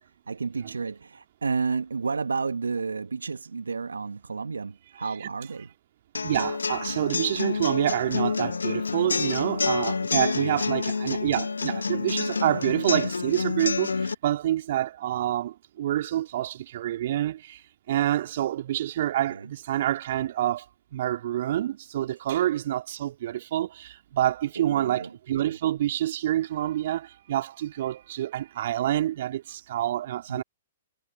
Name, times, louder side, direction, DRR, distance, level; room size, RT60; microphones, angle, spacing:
voice 1, 0.3-5.7 10.4-10.6 11.1-11.2 19.3-19.5 24.5-25.5 30.3-30.4, right 4 dB, 80° right, 1.5 m, -31 dB
sound 1, 6.1-14.1, left 4 dB, 80° left, 2.0 m, -28 dB
voice 2, 6.2-17.6 17.9-20.6 20.9-30.4, right 12 dB, 55° right, 2.8 m, -27 dB
figure-of-eight pair, 115°, 0 cm